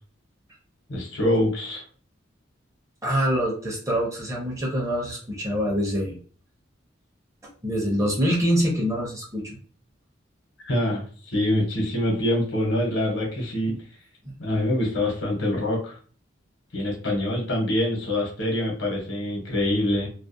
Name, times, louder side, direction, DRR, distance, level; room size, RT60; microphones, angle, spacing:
voice 1, 0.9-1.8 10.6-11.0 11.3-13.7 14.4-15.9 16.7-20.1, left 1 dB, 75° left, -1 dB, 0.9 m, -25 dB
voice 2, 3.0-6.1 7.6-9.6 13.7-13.8, equal, 15° right, -2 dB, 0.6 m, -25 dB
2.4 x 2.0 x 2.5 m, 0.42 s
head